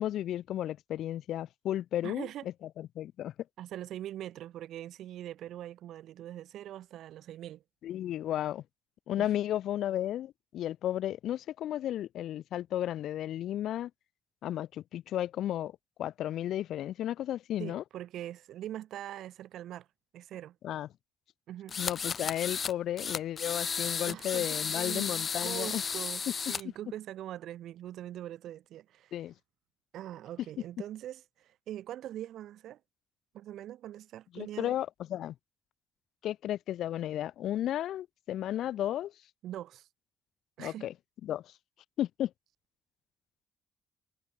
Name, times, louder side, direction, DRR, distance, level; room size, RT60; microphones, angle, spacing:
voice 1, 0.0-2.3 2.8-3.3 7.8-8.6 9.1-13.9 14.4-17.8 20.6-20.9 21.8-25.8 29.1-29.3 34.3-35.3 36.2-39.1 40.6-40.9 41.2-41.5 42.0-42.3, left 12 dB, 80° left, 1.4 m, -33 dB
voice 2, 2.0-2.4 3.6-7.6 9.2-9.3 17.6-19.9 20.1-20.6 21.5-21.8 24.1-29.1 29.9-32.8 33.3-34.7 39.4-39.9 40.6-40.9, right 12 dB, 80° right, 3.3 m, -42 dB
sound 1, 21.7-22.7 23.0-26.6, left 6 dB, 45° left, 1.5 m, -34 dB
cardioid pair, 90°, 0 cm